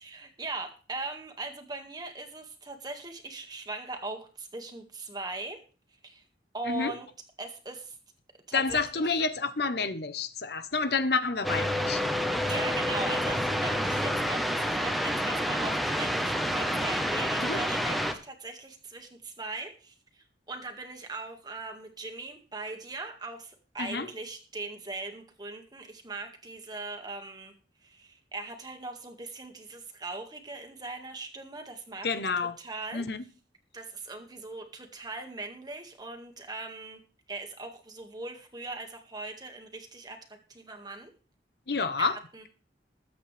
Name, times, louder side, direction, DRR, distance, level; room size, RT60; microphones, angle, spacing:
voice 1, 0.0-5.6 6.0-6.2 6.5-7.1 7.4-8.0 8.5-9.2 12.5-27.5 27.8-32.2 32.6-33.1 33.7-37.0 37.3-41.1 42.0-42.5, right 3 dB, 20° right, 1.9 m, -40 dB
voice 2, 8.5-12.0 17.4-17.6 23.8-24.1 32.0-32.5 32.9-33.2 41.7-42.2, left 4 dB, 60° left, 0.9 m, -29 dB
sound 1, 11.4-18.1, equal, ahead, 1.1 m, -28 dB
21.0 x 8.3 x 3.4 m
head